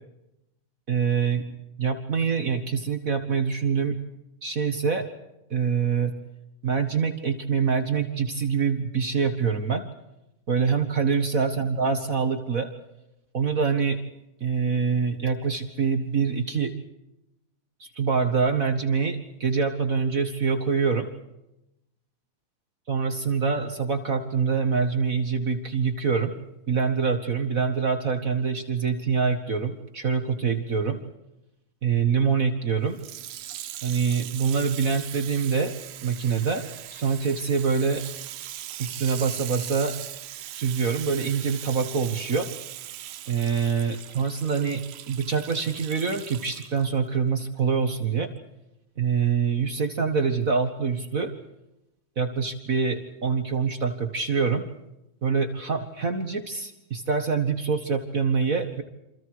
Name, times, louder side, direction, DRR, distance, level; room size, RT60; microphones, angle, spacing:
voice 1, 0.9-1.4 1.8-4.0 4.4-5.1 5.5-6.1 6.6-9.8 10.5-12.7 13.3-14.0 14.4-16.7 17.8-21.1 22.9-26.3 26.7-31.0 31.8-33.0 33.8-35.7 36.0-36.6 36.9-38.0 38.8-39.9 40.5-42.5 43.3-44.8 45.1-48.3 49.0-51.3 52.1-54.6 55.2-58.8, right 5 dB, 55° right, 5 dB, 0.9 m, -25 dB
Water tap faucet / Sink (filling or washing), 32.9-46.9 47.6-47.7, right 13 dB, 85° right, 3.0 m, -40 dB
29.0 x 27.0 x 4.8 m, 0.88 s
omnidirectional pair, 4.3 m